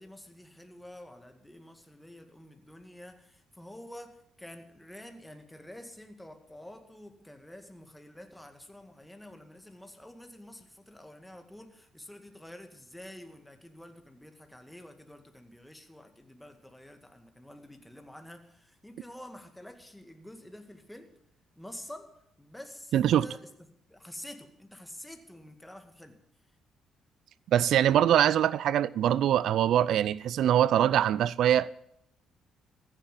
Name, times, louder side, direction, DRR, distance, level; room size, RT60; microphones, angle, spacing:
voice 1, 0.0-21.2 21.6-26.2, left 1 dB, 5° left, 2.0 m, -48 dB
voice 2, 22.9-23.2 27.5-31.7, right 11 dB, 70° right, 0.4 m, -23 dB
15.0 x 7.4 x 7.7 m
hypercardioid pair, 50°, 0 cm